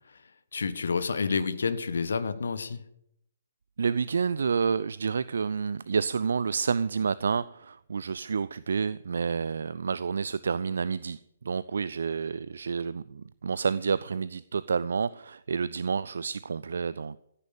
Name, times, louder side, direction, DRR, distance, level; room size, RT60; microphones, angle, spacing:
voice 1, 0.1-2.8, left 5 dB, 60° left, 1.4 m, -30 dB
voice 2, 3.8-11.2 11.4-17.2, right 5 dB, 60° right, 0.4 m, -29 dB
15.0 x 9.9 x 6.9 m
figure-of-eight pair, 130°, 0 cm